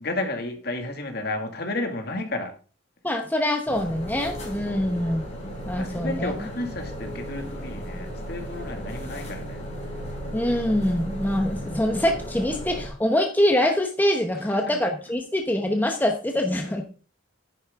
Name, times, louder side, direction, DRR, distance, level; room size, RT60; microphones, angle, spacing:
voice 1, 0.0-2.5 4.7-4.9 5.8-9.6 14.5-14.8 16.5-16.6, left 2 dB, 50° left, 5 dB, 2.3 m, -32 dB
voice 2, 3.0-5.2 5.6-6.3 10.3-16.8, left 1 dB, 10° left, 3 dB, 1.0 m, -24 dB
sound 1, 3.7-12.9, equal, 35° left, 4.7 m, -35 dB
10.5 x 9.6 x 3.7 m, 0.36 s
head